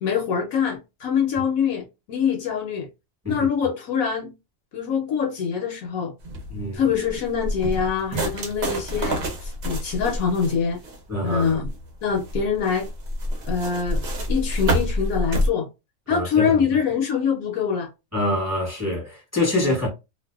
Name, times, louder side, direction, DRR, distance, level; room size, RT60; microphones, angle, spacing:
voice 1, 0.0-2.9 3.3-4.3 4.7-6.1 6.7-10.8 11.2-11.7 12.0-12.9 13.4-14.0 14.3-15.7 16.1-17.9 19.6-19.7, left 6 dB, 70° left, 1.0 m, -24 dB
sound 1, 6.2-15.5, equal, 55° right, 0.8 m, -28 dB
voice 2, 6.5-6.8 11.1-11.6 16.1-16.8 18.1-19.9, left 1 dB, 15° right, 0.8 m, -25 dB
2.6 x 2.1 x 2.2 m
omnidirectional pair, 1.6 m